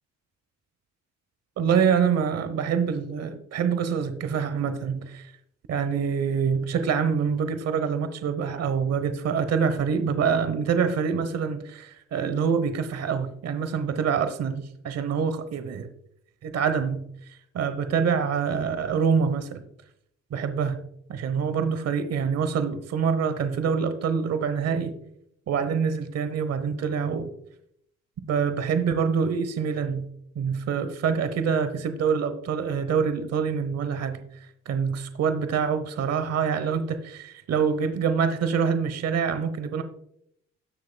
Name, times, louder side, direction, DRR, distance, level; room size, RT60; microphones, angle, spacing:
voice 1, 1.6-5.3 5.7-15.9 16.4-17.0 17.5-19.6 20.3-20.8 21.1-25.0 25.5-27.3 28.3-30.1 30.4-34.2 34.7-39.8, right 6 dB, 55° right, 10 dB, 0.9 m, -25 dB
16.5 x 6.5 x 2.2 m, 0.72 s
cardioid pair, 90°, 30 cm